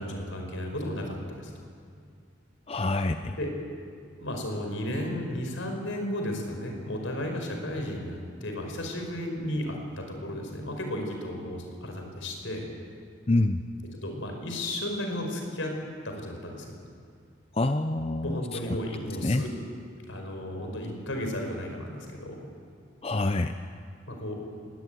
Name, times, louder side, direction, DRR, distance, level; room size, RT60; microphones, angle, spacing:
voice 1, 0.0-1.5 3.4-3.5 4.2-12.7 13.9-15.8 16.0-16.7 18.2-19.7 20.1-22.4 24.1-24.4, left 1 dB, 75° left, 3 dB, 5.2 m, -34 dB
voice 2, 2.7-3.4 13.3-13.6 17.5-18.4 18.7-18.8 19.2-19.4 23.0-23.5, left 2 dB, 30° left, 8 dB, 0.6 m, -26 dB
21.0 x 19.5 x 9.3 m, 2.3 s
head